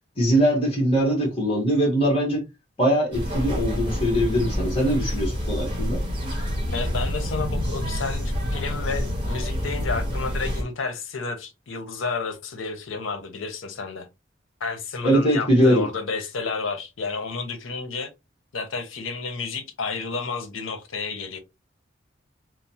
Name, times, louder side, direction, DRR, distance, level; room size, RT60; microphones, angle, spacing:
voice 1, 0.2-2.5 2.8-6.0 15.0-15.9, equal, 30° left, 1.2 m, -21 dB
sound 1, 3.1-10.6, equal, 25° right, 0.9 m, -27 dB
voice 2, 6.7-14.1 14.6-18.1 18.5-21.4, left 4 dB, 85° left, 0.7 m, -31 dB
3.1 x 2.0 x 2.7 m
head